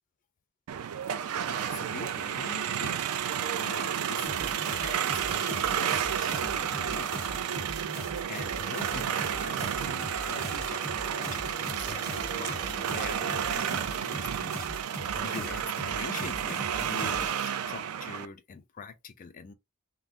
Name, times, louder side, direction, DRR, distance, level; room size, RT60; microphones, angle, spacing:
sound 1, 0.7-18.3, right 9 dB, 75° right, 0.3 m, -31 dB
voice 1, 1.5-7.2 8.3-14.6 14.8-19.5, left 5 dB, 35° left, 0.3 m, -44 dB
sound 2, 4.3-17.3, equal, 15° right, 0.9 m, -41 dB
sound 3, 8.4-13.5, right 4 dB, 40° right, 1.1 m, -44 dB
2.5 x 2.0 x 3.5 m
head